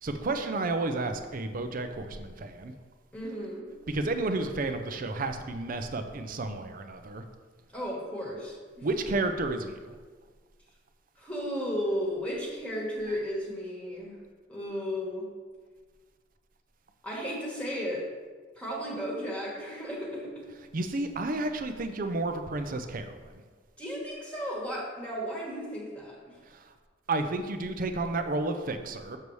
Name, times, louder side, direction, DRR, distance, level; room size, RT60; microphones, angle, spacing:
voice 1, 0.0-2.7 3.9-7.2 8.8-9.9 13.1-13.2 20.7-23.4 26.5-26.7 27.1-29.2, right 2 dB, 45° right, 7 dB, 0.5 m, -31 dB
voice 2, 3.1-3.7 7.7-8.9 11.2-14.2 14.5-15.3 17.0-18.1 18.5-20.5 23.8-26.3, equal, 5° left, -4 dB, 1.3 m, -34 dB
6.8 x 6.6 x 3.2 m, 1.5 s
head